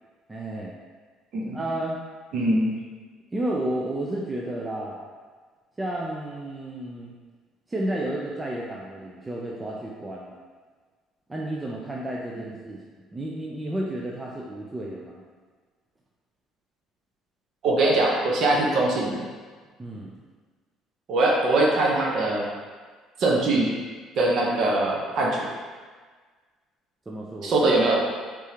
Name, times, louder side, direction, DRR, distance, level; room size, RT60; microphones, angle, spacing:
voice 1, 0.3-0.7 1.5-2.0 3.3-5.1 5.8-7.1 7.7-10.4 11.3-15.2 19.8-20.2 27.1-27.5, right 1 dB, 10° right, -3 dB, 0.3 m, -32 dB
voice 2, 2.3-2.7 17.6-19.2 21.1-22.5 23.2-23.7 24.2-25.5 27.4-28.0, right 2 dB, 45° right, -2 dB, 0.8 m, -22 dB
4.9 x 3.6 x 2.8 m, 1.5 s
cardioid pair, 180°, 0 cm